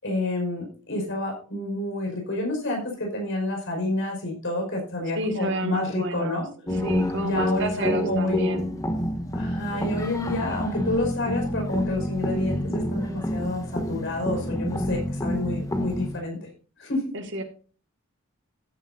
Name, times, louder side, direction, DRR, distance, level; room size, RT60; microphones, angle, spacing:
voice 1, 0.0-6.5 7.2-8.5 9.3-16.5 16.8-17.1, left 2 dB, 65° left, 1 dB, 5.4 m, -29 dB
voice 2, 5.2-6.4 6.7-8.7 17.1-17.4, right 1 dB, 65° right, 6 dB, 1.8 m, -30 dB
sound 1, 6.7-16.2, left 1 dB, 15° left, 1.3 m, -28 dB
14.5 x 10.0 x 2.7 m, 0.38 s
head